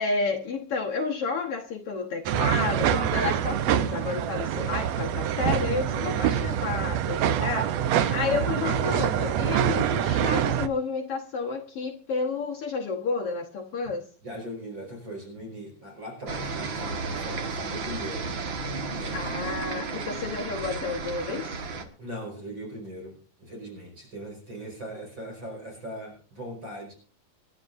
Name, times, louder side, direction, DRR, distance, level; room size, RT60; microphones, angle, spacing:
voice 1, 0.0-14.1 19.1-21.5, left 4 dB, 60° left, 1 dB, 1.6 m, -31 dB
sound 1, 2.3-10.7, right 10 dB, 85° right, 1.5 m, -25 dB
voice 2, 5.9-6.5 14.2-18.3 18.6-19.3 22.0-26.9, right 1 dB, 30° right, 0 dB, 5.7 m, -40 dB
sound 2, 16.3-21.8, right 4 dB, 50° right, 1.6 m, -33 dB
26.5 x 11.0 x 2.6 m, 0.38 s
omnidirectional pair, 4.0 m